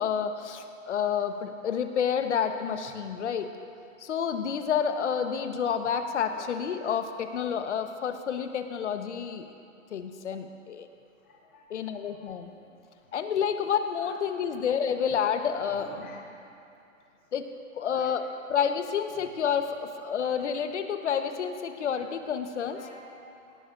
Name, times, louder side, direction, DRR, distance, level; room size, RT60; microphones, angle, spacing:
voice 1, 0.0-3.5 4.0-9.5 9.9-10.9 11.7-12.5 13.1-15.9 17.3-17.5 17.8-18.2 18.5-22.9, left 7 dB, 60° left, 7 dB, 1.1 m, -29 dB
voice 2, 12.1-12.5 14.0-14.2 15.7-16.2 17.8-18.1 21.9-22.1 22.5-23.6, left 3 dB, 10° left, -3 dB, 0.5 m, -47 dB
19.5 x 18.0 x 2.6 m, 2.5 s
hypercardioid pair, 165°, 40 cm